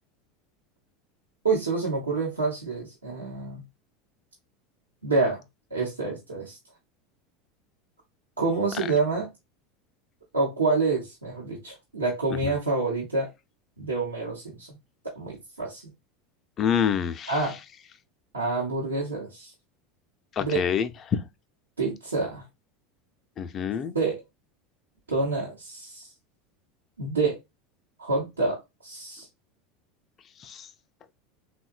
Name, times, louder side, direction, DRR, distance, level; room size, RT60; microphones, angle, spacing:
voice 1, 1.4-3.6 5.0-5.4 5.7-6.6 8.4-9.3 10.3-13.3 13.8-14.8 15.0-15.9 17.3-17.6 18.3-19.5 20.4-20.6 21.8-22.4 23.9-24.2 25.1-26.1 27.0-27.4 28.0-29.3, right 3 dB, 90° right, 0.8 m, -27 dB
voice 2, 16.6-17.4 20.3-21.2 23.4-24.0 30.4-30.7, left 8 dB, 35° left, 0.4 m, -27 dB
3.6 x 2.1 x 2.3 m
figure-of-eight pair, 80°, 0 cm